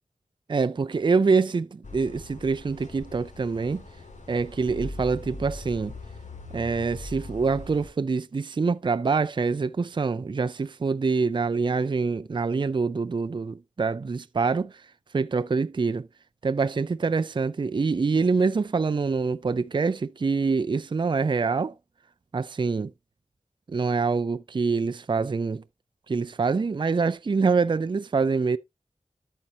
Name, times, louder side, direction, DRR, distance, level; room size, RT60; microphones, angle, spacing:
voice 1, 0.5-3.9 4.3-5.9 6.5-14.8 15.1-16.1 16.4-21.7 22.3-22.9 23.7-25.6 26.1-28.6, right 4 dB, 40° right, 0.4 m, -25 dB
sound 1, 1.8-7.9, left 2 dB, 75° left, 2.3 m, -41 dB
13.0 x 5.5 x 2.7 m
wide cardioid pair, 60°, 13 cm